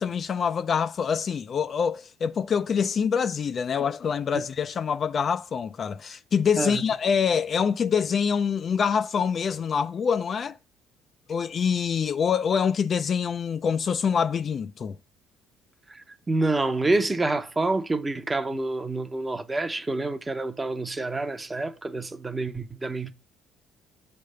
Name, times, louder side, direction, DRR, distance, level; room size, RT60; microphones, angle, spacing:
voice 1, 0.0-10.6 11.3-15.0, left 6 dB, 35° left, 0.3 m, -25 dB
voice 2, 16.3-23.1, right 2 dB, 15° right, 0.7 m, -27 dB
7.7 x 3.4 x 6.4 m
cardioid pair, 145°, 0 cm